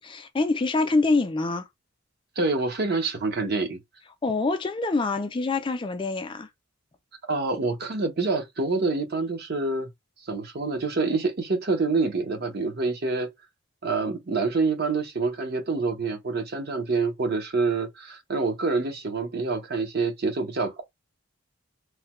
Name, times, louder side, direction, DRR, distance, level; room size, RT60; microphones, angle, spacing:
voice 1, 0.0-1.7 4.2-6.5, left 3 dB, 25° left, 0.3 m, -25 dB
voice 2, 2.4-3.8 7.3-9.9 10.3-13.3 13.8-20.8, right 3 dB, 50° right, 0.7 m, -26 dB
3.2 x 2.1 x 3.0 m
head